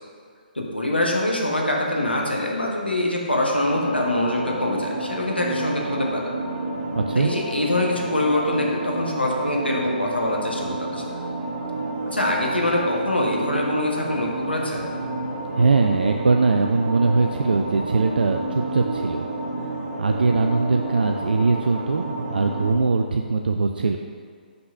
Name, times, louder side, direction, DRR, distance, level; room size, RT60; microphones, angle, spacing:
voice 1, 0.5-6.2 7.1-11.0 12.1-14.9, left 1 dB, 85° left, -1 dB, 1.2 m, -24 dB
sound 1, 3.7-22.7, right 2 dB, 25° right, 1.1 m, -30 dB
voice 2, 7.0-7.3 15.5-19.3 20.0-24.0, right 4 dB, 65° right, 4 dB, 0.3 m, -21 dB
5.8 x 3.9 x 5.4 m, 2.1 s
figure-of-eight pair, 135°, 5 cm